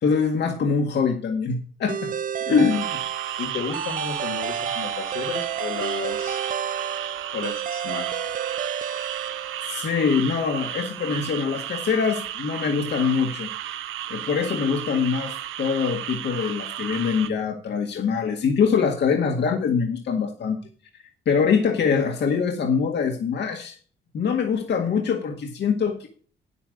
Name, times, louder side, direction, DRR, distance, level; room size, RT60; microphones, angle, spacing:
voice 1, 0.0-2.1 2.5-3.0 9.7-13.5 14.1-15.3 15.6-20.6 21.2-23.8 24.1-26.1, left 6 dB, 60° left, 2 dB, 1.8 m, -23 dB
sound 1, 1.9-10.0, right 8 dB, 45° right, 0.5 m, -31 dB
sound 2, 2.7-17.3, right 12 dB, 80° right, 0.8 m, -34 dB
voice 2, 3.4-6.4 7.3-8.2, left 6 dB, 75° left, 2 dB, 2.3 m, -33 dB
9.1 x 8.5 x 5.2 m, 0.42 s
cardioid pair, 90°, 20 cm